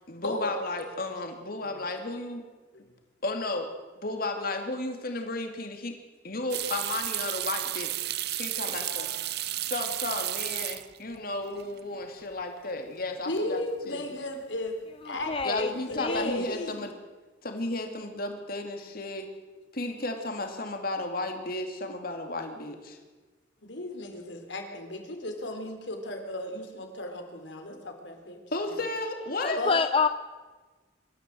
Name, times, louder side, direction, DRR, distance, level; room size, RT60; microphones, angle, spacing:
voice 1, 0.1-2.4 3.2-5.9 6.2-9.1 9.6-13.6 13.9-14.1 15.4-16.9 17.4-19.3 19.7-23.0 28.5-29.6, left 2 dB, 50° left, 5 dB, 2.7 m, -34 dB
sound 1, 6.5-11.2 11.5-12.1 12.4-12.5 15.2-15.6 15.9-16.4, right 14 dB, 60° right, 0.7 m, -33 dB
voice 2, 8.8-9.4 13.3-14.8 15.0-16.9 23.6-28.4 28.7-28.8 29.6-29.8, left 1 dB, 70° left, 4 dB, 3.7 m, -35 dB
voice 3, 15.0-16.4 29.4-30.1, left 4 dB, 30° left, 10 dB, 0.6 m, -28 dB
25.5 x 13.5 x 7.8 m, 1.3 s
head